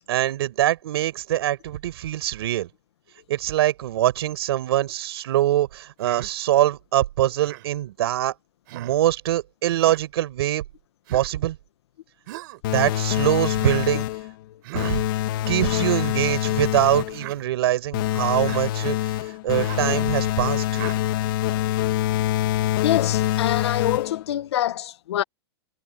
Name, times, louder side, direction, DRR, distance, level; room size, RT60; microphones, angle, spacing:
voice 1, 0.1-2.7 3.3-8.3 8.7-10.6 11.1-11.6 12.7-14.1 14.7-15.1 15.5-19.0 19.4-20.6, right 13 dB, 65° right, 5.7 m, -23 dB
Human voice, 6.0-6.3 7.4-7.7 8.7-9.0 9.8-10.0 11.1-11.3 12.3-12.6 13.6-13.8 14.6-15.0 15.8-16.2 17.1-17.4 18.4-18.7 19.6-19.9 20.7-21.0, right 19 dB, 50° right, 4.5 m, -39 dB
sound 1, 12.6-14.3 14.7-17.2 17.9-24.3, left 14 dB, 50° left, 2.9 m, -25 dB
voice 2, 22.8-25.2, left 12 dB, 75° left, 1.6 m, -25 dB
supercardioid pair, 160°, 14 cm